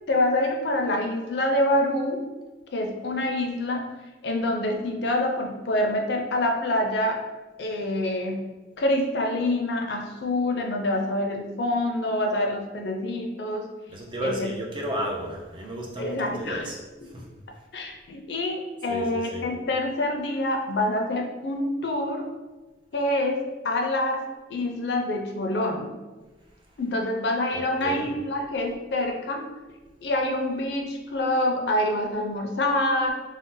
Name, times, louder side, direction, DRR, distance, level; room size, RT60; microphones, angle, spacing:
voice 1, 0.1-2.2 2.7-3.9 4.2-7.2 7.6-8.5 8.8-13.7 14.2-14.5 16.0-16.7 17.7-22.3 22.9-24.2 24.5-25.9 26.8-29.5 30.0-33.1, left 1 dB, 60° left, 2 dB, 0.4 m, -26 dB
voice 2, 13.9-16.8 17.1-17.3 18.9-19.5 27.5-28.1, right 1 dB, 25° right, -1 dB, 0.4 m, -33 dB
2.5 x 2.1 x 3.7 m, 1.2 s
head